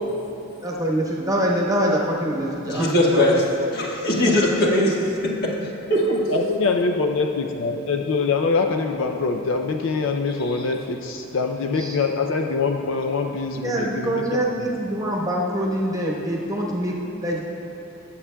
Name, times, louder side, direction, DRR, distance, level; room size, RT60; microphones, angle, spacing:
voice 1, 0.6-3.4 11.7-12.0 13.6-17.5, right 1 dB, 15° right, -3 dB, 1.1 m, -25 dB
voice 2, 2.7-3.4 3.7-5.0 5.2-5.5 5.9-6.3, left 1 dB, 45° left, -3 dB, 1.3 m, -20 dB
voice 3, 6.3-14.4, left 4 dB, 65° left, 4 dB, 0.4 m, -24 dB
20.5 x 7.3 x 2.2 m, 3.0 s
head